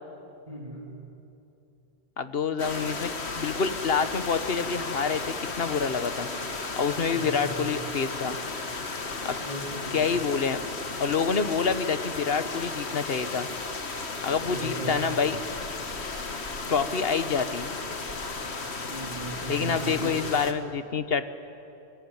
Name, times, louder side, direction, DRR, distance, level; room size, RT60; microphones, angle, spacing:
voice 1, 0.5-0.9 7.0-7.8 9.4-10.2 14.4-15.2 18.9-20.2, right 2 dB, 35° right, -2 dB, 3.1 m, -37 dB
voice 2, 2.2-6.3 6.8-8.4 9.2-9.4 9.9-10.6 11.0-13.5 14.2-15.4 16.7-17.7 19.5-21.3, left 5 dB, 65° left, 11 dB, 1.4 m, -27 dB
sound 1, 2.6-20.5, left 3 dB, 85° left, 2.0 m, -34 dB
26.5 x 22.5 x 9.9 m, 2.8 s
omnidirectional pair, 1.1 m